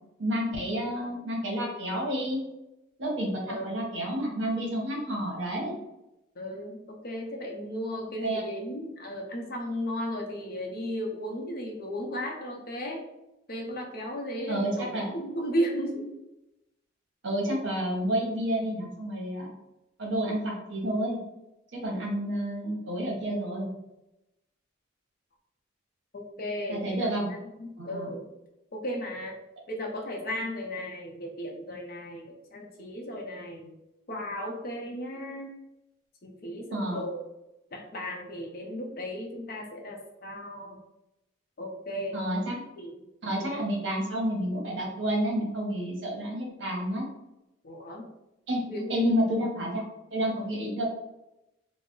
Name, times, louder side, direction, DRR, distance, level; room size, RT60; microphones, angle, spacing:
voice 1, 0.2-2.4 3.0-5.7 8.2-8.4 14.5-15.1 17.2-19.5 20.0-21.2 21.7-23.7 26.7-27.3 27.8-28.1 36.7-37.0 42.1-42.6 43.2-47.0 48.5-49.8 50.1-50.8, right 1 dB, 60° right, -1 dB, 0.8 m, -30 dB
voice 2, 6.4-13.0 13.5-16.1 26.4-27.1 27.6-28.2 28.7-29.4 29.7-33.8 34.1-35.5 36.2-37.2 37.7-40.8 41.6-42.2 42.8-42.9 43.2-43.5 47.6-48.1 48.7-49.3, equal, 50° left, 1 dB, 0.5 m, -35 dB
2.4 x 2.0 x 3.7 m, 0.92 s
head